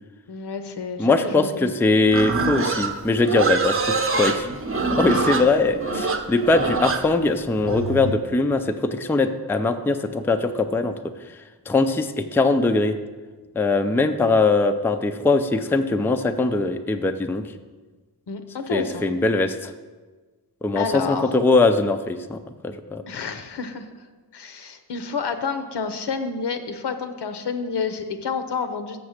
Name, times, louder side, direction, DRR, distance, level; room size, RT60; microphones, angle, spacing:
voice 1, 0.3-1.7 5.1-5.5 5.9-6.0 18.3-19.0 20.7-21.3 23.1-24.0 24.3-29.0, left 5 dB, 85° left, 8 dB, 0.8 m, -29 dB
voice 2, 1.0-4.5 5.0-11.0 11.7-13.0 13.6-17.5 18.7-19.7 20.6-23.0, left 3 dB, 5° left, 8 dB, 0.3 m, -21 dB
Livestock farm animals working animals, 2.1-8.1, right 4 dB, 35° right, 0.7 m, -25 dB
7.1 x 6.6 x 6.4 m, 1.3 s
wide cardioid pair, 135°, 40 cm